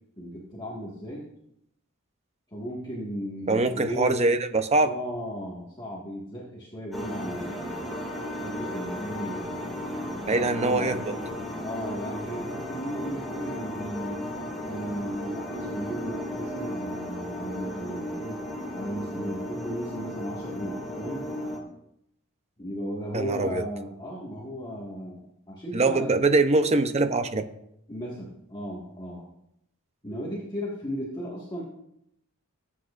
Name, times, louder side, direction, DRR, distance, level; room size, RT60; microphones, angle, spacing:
voice 1, 0.2-1.3 2.5-4.2 4.8-7.9 8.4-11.0 11.6-14.3 14.7-18.4 18.7-21.3 22.6-26.1 27.9-29.3 30.0-31.6, equal, 20° left, -5 dB, 1.7 m, -36 dB
voice 2, 3.5-4.9 10.3-11.0 23.1-23.6 25.7-27.4, right 2 dB, 30° right, 9 dB, 0.7 m, -23 dB
sound 1, 6.9-21.6, equal, ahead, 2.2 m, -35 dB
17.5 x 8.6 x 2.5 m, 0.78 s
head